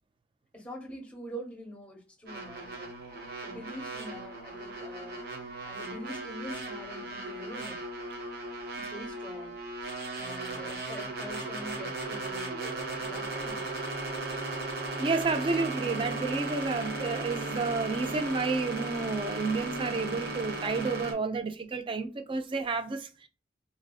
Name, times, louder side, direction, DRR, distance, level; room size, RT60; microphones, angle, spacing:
voice 1, 0.5-2.9 3.4-5.2 5.7-7.8 8.8-9.5 10.1-13.7, equal, 5° left, 1.0 m, -44 dB
sound 1, 2.3-21.1, right 2 dB, 60° right, 0.9 m, -36 dB
voice 2, 15.0-23.3, right 4 dB, 30° right, 0.4 m, -30 dB
4.1 x 2.5 x 2.3 m
head